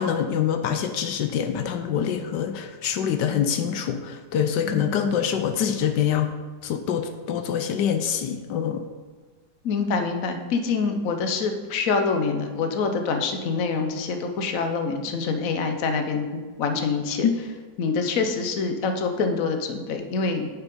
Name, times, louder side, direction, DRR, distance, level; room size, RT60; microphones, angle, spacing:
voice 1, 0.0-6.3 6.6-8.8 17.2-17.3, left 8 dB, 80° left, 7 dB, 1.3 m, -25 dB
voice 2, 4.6-5.0 9.6-16.3 16.6-17.3 17.8-20.5, left 4 dB, 55° left, 5 dB, 1.2 m, -26 dB
9.4 x 5.8 x 5.4 m, 1.4 s
omnidirectional pair, 1.9 m